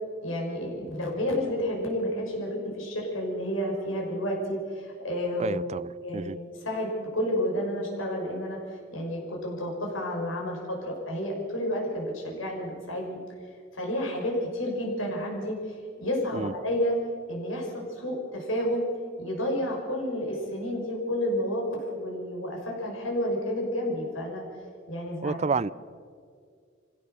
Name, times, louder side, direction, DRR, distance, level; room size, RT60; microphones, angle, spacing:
voice 1, 0.2-5.6 6.0-8.6 8.9-13.2 13.7-15.6 16.0-17.0 17.3-18.9 19.2-24.4 24.9-25.4, equal, 90° left, -1 dB, 6.1 m, -30 dB
voice 2, 5.4-6.4 16.3-16.5 25.2-25.7, right 4 dB, 35° right, 18 dB, 0.5 m, -30 dB
25.0 x 16.5 x 6.8 m, 2.2 s
head